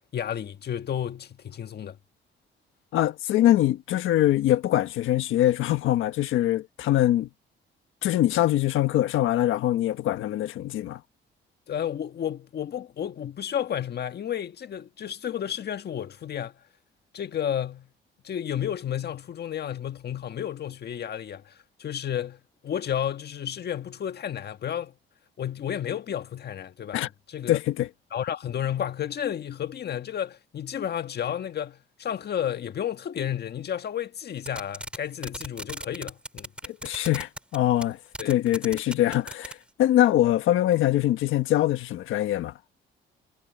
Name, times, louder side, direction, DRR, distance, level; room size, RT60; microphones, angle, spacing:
voice 1, 0.1-2.0 11.7-16.6 17.1-17.9 18.2-24.9 25.4-27.6 28.1-36.5 38.2-38.3, left 9 dB, 55° left, 1.6 m, -32 dB
voice 2, 2.9-7.3 8.0-11.0 26.9-27.1 27.5-27.9 36.6-38.0 38.3-42.5, left 13 dB, 85° left, 1.4 m, -23 dB
sound 1, 34.4-35.0 35.2-37.6 37.8-37.9 38.1-39.5, right 1 dB, 5° right, 2.7 m, -35 dB
cardioid pair, 90°, 20 cm